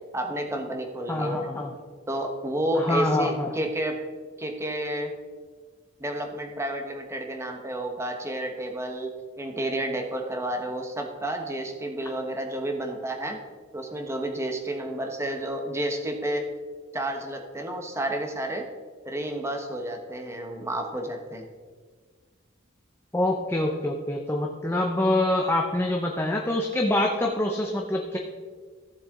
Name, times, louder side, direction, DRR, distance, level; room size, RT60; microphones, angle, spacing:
voice 1, 0.1-1.5 2.1-4.0 4.4-5.2 6.0-13.4 13.7-16.5 16.9-18.7 19.0-21.4, right 1 dB, 15° right, 4 dB, 1.1 m, -30 dB
voice 2, 1.1-1.7 2.8-3.5 23.1-28.2, left 1 dB, 15° left, 1 dB, 0.7 m, -25 dB
14.5 x 7.3 x 3.8 m, 1.5 s
head